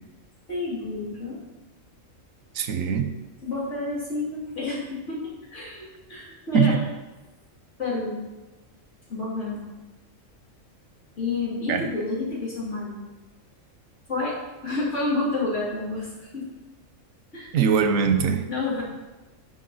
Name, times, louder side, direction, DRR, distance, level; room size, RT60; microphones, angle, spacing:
voice 1, 0.5-1.4 3.4-4.8 5.1-6.7 7.8-8.1 9.1-9.6 11.2-12.9 14.1-14.3 14.6-16.5 17.3-17.6 18.5-18.8, left 3 dB, 60° left, -6 dB, 3.0 m, -29 dB
voice 2, 2.5-3.1 6.5-6.8 11.7-11.9 17.5-18.5, right 6 dB, 90° right, 8 dB, 1.2 m, -21 dB
11.0 x 5.3 x 4.1 m, 1.1 s
omnidirectional pair, 1.4 m